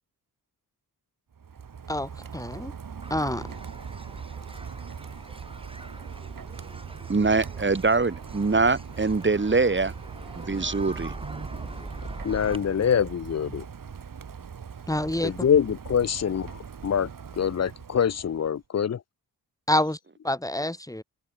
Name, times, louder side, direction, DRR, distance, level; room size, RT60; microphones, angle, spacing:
Rain, 1.3-18.6, right 6 dB, 55° right, 2.8 m, -41 dB
voice 1, 1.9-2.7 3.1-3.4 14.9-15.3 19.7-20.0 20.2-21.0, left 1 dB, 10° left, 4.7 m, -27 dB
sound 1, 3.0-12.6, right 1 dB, 15° right, 5.3 m, -43 dB
voice 2, 7.1-9.9 10.4-11.5, right 3 dB, 30° right, 2.8 m, -24 dB
voice 3, 12.2-13.6 15.2-16.5 16.8-17.1 17.4-19.0, left 8 dB, 40° left, 0.6 m, -24 dB
open air
cardioid pair, 95°, 39 cm